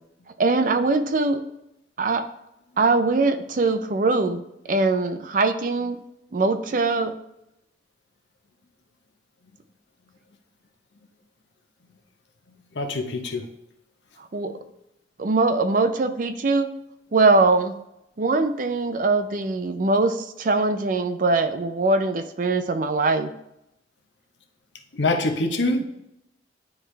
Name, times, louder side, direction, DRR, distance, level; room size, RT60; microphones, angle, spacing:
voice 1, 0.4-1.4 2.0-2.3 2.8-4.4 4.7-6.0 6.3-7.1 14.3-14.5 15.2-16.7 17.1-17.7 18.2-23.3, right 3 dB, 45° right, 9 dB, 0.5 m, -22 dB
voice 2, 12.7-13.4 24.9-25.8, left 2 dB, 75° left, 4 dB, 0.8 m, -24 dB
9.5 x 3.3 x 3.3 m, 0.84 s
head